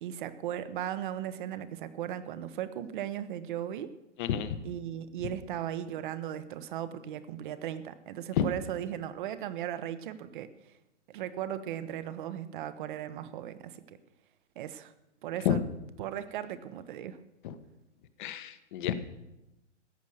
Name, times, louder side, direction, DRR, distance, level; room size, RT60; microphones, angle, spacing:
voice 1, 0.0-3.9 4.6-10.8 11.1-14.0 14.5-14.9 15.2-15.6 16.0-17.2, right 11 dB, 45° right, 12 dB, 1.1 m, -37 dB
voice 2, 4.2-4.6 8.3-8.5 15.4-15.6 17.4-17.5 18.2-18.9, left 10 dB, 45° left, 11 dB, 1.3 m, -29 dB
14.5 x 9.7 x 6.5 m, 0.95 s
figure-of-eight pair, 125°, 36 cm